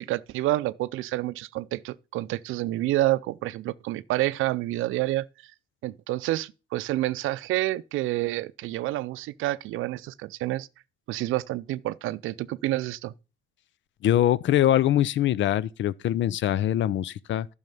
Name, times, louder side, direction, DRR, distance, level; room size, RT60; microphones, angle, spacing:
voice 1, 0.0-5.3 5.8-10.7 11.1-13.1, right 16 dB, 90° right, 0.5 m, -28 dB
voice 2, 14.0-17.5, left 12 dB, 70° left, 0.6 m, -23 dB
10.5 x 6.4 x 5.5 m
cardioid pair, 90°, 20 cm